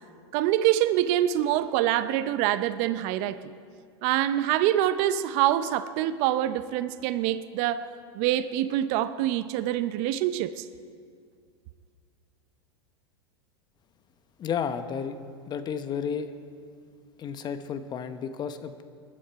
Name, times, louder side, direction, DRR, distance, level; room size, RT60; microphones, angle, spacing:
voice 1, 0.3-3.4 4.0-7.9 8.1-10.6, right 12 dB, 50° right, 13 dB, 0.7 m, -25 dB
voice 2, 14.4-15.2 15.5-16.3 17.2-18.8, left 7 dB, 30° left, 10 dB, 1.0 m, -32 dB
21.5 x 10.0 x 4.7 m, 2.1 s
hypercardioid pair, 105°, 14 cm